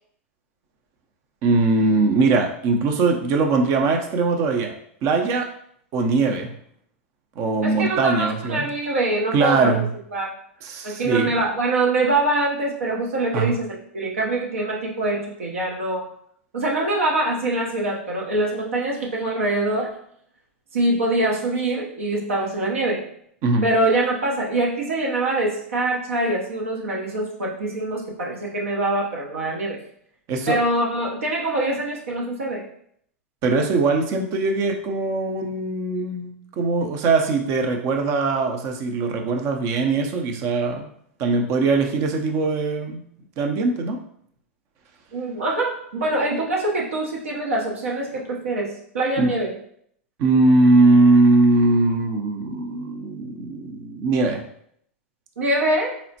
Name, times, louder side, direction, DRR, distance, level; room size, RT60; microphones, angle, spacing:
voice 1, 1.4-4.7 5.0-5.5 5.9-6.5 7.4-8.7 9.3-9.9 10.6-11.3 13.3-13.5 23.4-23.7 30.3-30.6 33.4-40.9 41.2-43.0 43.4-44.0 49.2-49.3 50.2-54.4, right 3 dB, 45° right, 3 dB, 0.5 m, -20 dB
voice 2, 7.6-9.7 10.1-10.3 10.8-16.1 16.5-19.9 20.7-23.0 23.6-29.8 30.5-32.7 45.1-48.7 48.9-49.5 55.4-56.0, right 2 dB, 80° right, -2 dB, 0.7 m, -24 dB
4.1 x 2.0 x 2.7 m, 0.67 s
hypercardioid pair, 105°, 7 cm